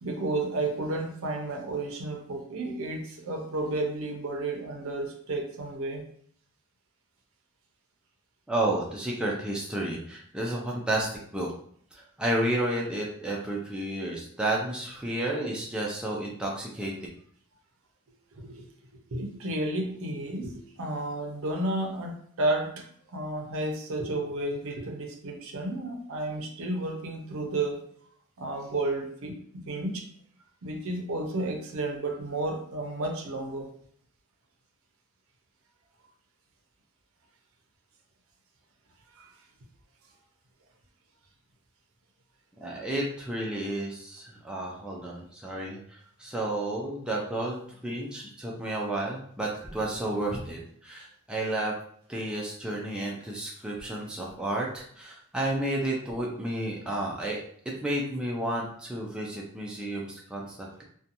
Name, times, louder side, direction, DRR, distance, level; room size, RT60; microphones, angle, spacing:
voice 1, 0.0-6.0 18.4-18.7 19.1-22.8 23.1-27.8 28.4-30.0 30.6-33.7 39.2-39.3, right 2 dB, 65° right, 2 dB, 0.5 m, -32 dB
voice 2, 8.5-11.5 11.9-16.9 42.6-51.7 52.1-57.4 57.7-60.8, right 1 dB, 5° right, -3 dB, 0.3 m, -31 dB
2.8 x 2.2 x 2.5 m, 0.64 s
head